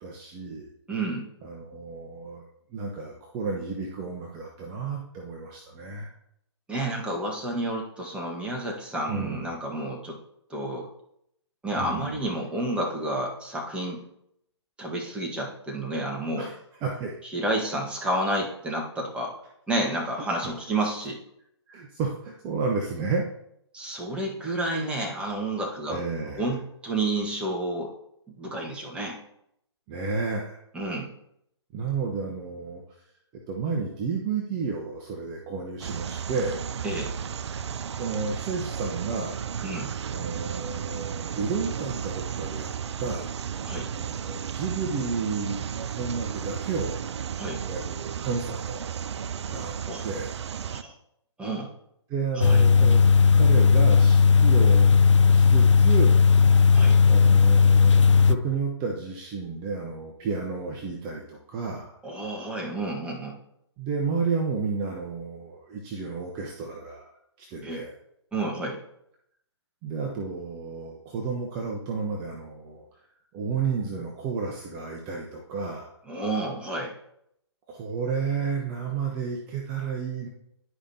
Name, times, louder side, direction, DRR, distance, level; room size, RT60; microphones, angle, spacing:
voice 1, 0.0-0.7 1.4-6.1 9.1-9.5 11.8-12.3 16.3-16.5 16.8-17.1 18.0-18.1 21.7-23.2 25.9-26.5 29.9-30.6 31.7-32.8 33.5-36.6 38.0-39.4 40.1-42.7 43.0-43.3 43.9-45.6 45.9-47.0 47.6-48.9 49.4-49.7 50.0-50.4 52.1-53.0 53.3-55.0 55.2-56.2 57.1-62.0 63.8-67.1 67.4-68.0 69.8-72.9 73.3-76.0 77.7-80.3, right 5 dB, 25° right, 0 dB, 0.9 m, -31 dB
voice 2, 0.9-1.3 6.7-10.2 10.5-10.9 11.6-14.0 14.8-16.5 17.2-19.3 19.7-21.2 23.7-26.0 26.4-27.9 28.3-29.2 30.7-31.1 36.8-37.1 39.6-39.9 43.6-43.9 47.4-47.6 49.9-50.0 50.7-50.9 51.4-51.7 52.3-52.6 56.7-57.0 62.0-63.3 67.6-67.8 68.3-68.8 76.1-76.9, right 1 dB, 5° right, -1 dB, 1.3 m, -30 dB
sound 1, 35.8-50.8, right 8 dB, 70° right, 0.4 m, -34 dB
sound 2, 52.4-58.4, left 5 dB, 90° left, 0.4 m, -16 dB
11.0 x 5.0 x 2.8 m, 0.75 s
hypercardioid pair, 135°, 15 cm